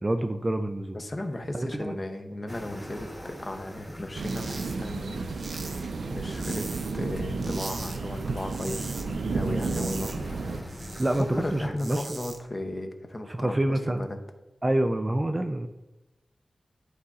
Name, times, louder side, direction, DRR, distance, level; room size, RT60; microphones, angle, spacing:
voice 1, 0.0-1.0 1.5-2.0 11.0-12.2 13.3-14.1 14.6-15.7, right 1 dB, 20° right, 7 dB, 0.3 m, -27 dB
voice 2, 0.9-5.3 6.1-9.0 9.3-10.3 11.1-14.2, left 1 dB, 25° left, 5 dB, 0.6 m, -35 dB
sound 1, 2.5-11.7, equal, ahead, 1.1 m, -43 dB
sound 2, 4.1-10.6, right 3 dB, 80° right, 0.5 m, -32 dB
sound 3, 4.2-4.8 5.0-7.0 7.4-8.0 8.3-9.1 9.4-11.2 11.6-12.4, right 3 dB, 60° right, 0.8 m, -41 dB
11.5 x 4.1 x 2.4 m, 1.0 s
wide cardioid pair, 140°, 0 cm